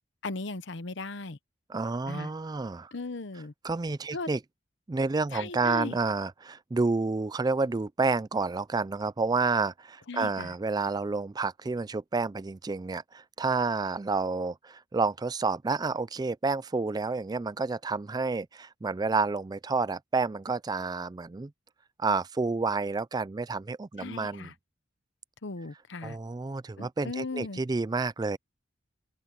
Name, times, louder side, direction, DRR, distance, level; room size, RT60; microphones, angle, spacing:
voice 1, 0.2-1.4 2.1-2.3 2.9-3.5 4.1-4.3 5.3-6.0 10.1-10.5 24.0-24.5 25.4-26.2 26.8-27.6, left 3 dB, 60° left, 0.9 m, -37 dB
voice 2, 1.7-2.9 3.6-4.4 4.9-21.5 22.0-24.5 26.0-28.4, right 4 dB, 20° right, 0.3 m, -29 dB
open air
head